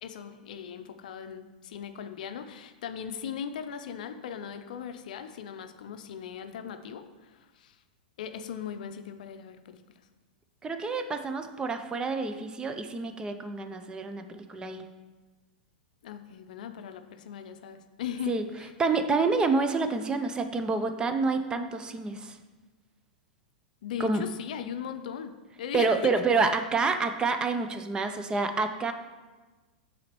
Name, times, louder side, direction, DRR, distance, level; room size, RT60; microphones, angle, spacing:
voice 1, 0.0-7.8 8.2-9.8 16.0-18.7 23.8-26.2, left 8 dB, 60° left, 8 dB, 0.5 m, -39 dB
voice 2, 10.6-14.9 18.3-18.4 18.8-22.4 24.0-24.2 25.7-28.9, right 4 dB, 15° right, 8 dB, 0.4 m, -28 dB
8.4 x 4.1 x 3.1 m, 1.3 s
figure-of-eight pair, 100°, 5 cm